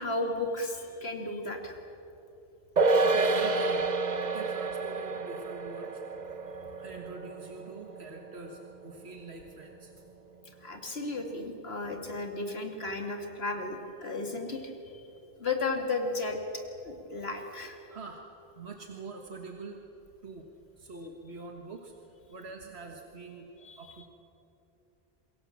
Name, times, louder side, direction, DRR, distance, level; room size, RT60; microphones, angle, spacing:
voice 1, 0.0-1.8 10.6-15.0 15.4-16.4 16.8-17.8 23.6-23.8, left 3 dB, 75° left, 3 dB, 2.7 m, -34 dB
sound 1, 2.8-9.4 9.7-9.8, right 3 dB, 45° right, 1.2 m, -30 dB
voice 2, 3.0-3.9 4.2-6.0 6.8-10.0 15.0-15.1 17.9-18.2 18.5-19.8 20.2-20.5 20.8-21.9 22.3-24.1, right 4 dB, 90° right, 2 dB, 1.8 m, -44 dB
27.0 x 23.0 x 7.3 m, 2.9 s
omnidirectional pair, 1.1 m